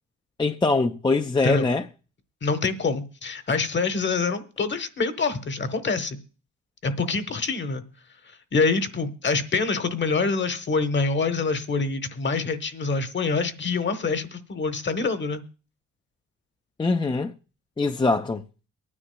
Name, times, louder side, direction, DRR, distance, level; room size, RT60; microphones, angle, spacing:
voice 1, 0.4-1.8 16.8-17.3 17.8-18.4, left 3 dB, 15° left, 0.5 m, -23 dB
voice 2, 2.4-6.2 6.8-7.8 8.5-15.4, left 4 dB, 40° left, 1.2 m, -25 dB
24.0 x 9.8 x 2.3 m
cardioid pair, 90°, 30 cm